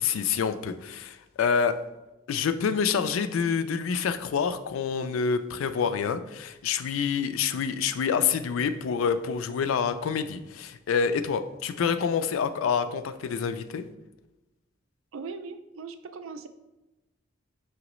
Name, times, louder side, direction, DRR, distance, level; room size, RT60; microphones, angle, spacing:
voice 1, 0.0-1.8 2.3-13.8, left 6 dB, 85° left, 11 dB, 0.3 m, -27 dB
voice 2, 15.1-16.5, right 4 dB, 85° right, 10 dB, 0.4 m, -39 dB
5.0 x 3.0 x 3.0 m, 1.0 s
head